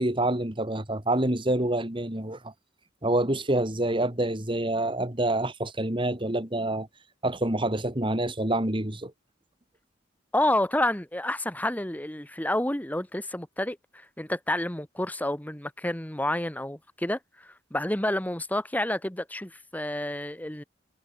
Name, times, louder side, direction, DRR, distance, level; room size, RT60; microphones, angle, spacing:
voice 1, 0.0-2.5 3.0-6.9 7.2-9.1, right 1 dB, 30° right, 2.8 m, -27 dB
voice 2, 10.3-13.8 14.2-20.6, left 1 dB, 10° left, 1.3 m, -29 dB
head